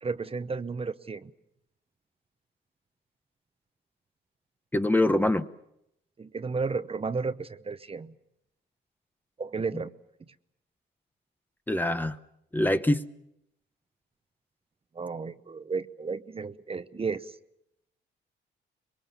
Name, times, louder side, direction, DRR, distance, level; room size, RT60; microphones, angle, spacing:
voice 1, 0.0-1.3 6.2-8.1 9.4-9.9 15.0-17.3, right 4 dB, 30° right, 12 dB, 0.9 m, -33 dB
voice 2, 4.7-5.5 9.7-9.8 11.7-12.2 12.5-13.0, left 1 dB, 10° left, 10 dB, 0.8 m, -24 dB
25.0 x 22.5 x 7.1 m, 0.82 s
cardioid pair, 90°, 20 cm